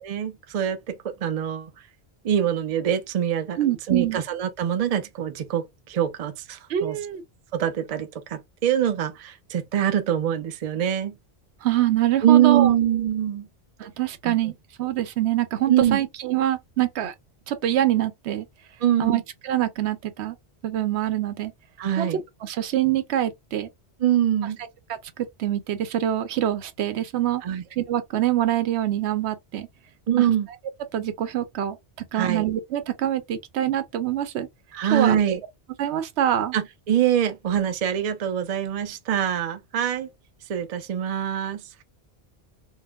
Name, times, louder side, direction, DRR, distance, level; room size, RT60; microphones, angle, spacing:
voice 1, 0.0-0.9 1.2-1.7 2.2-3.6 3.9-7.0 7.5-11.2 12.2-13.5 14.2-14.3 15.7-16.0 18.8-19.2 21.8-22.2 24.0-24.6 27.4-27.6 30.1-30.5 32.1-32.4 34.7-35.4 36.5-40.1 40.5-41.8, right 10 dB, 50° right, 0.5 m, -24 dB
voice 2, 3.6-4.2 6.7-7.2 11.6-12.7 13.8-17.1 17.5-18.5 19.0-20.4 20.6-21.5 22.0-22.1 22.4-23.7 24.9-27.4 27.8-29.7 30.2-30.3 30.9-31.8 32.1-34.5 34.9-35.2 35.8-36.6, right 12 dB, 85° right, 0.9 m, -25 dB
3.8 x 2.1 x 2.3 m
omnidirectional pair, 1.1 m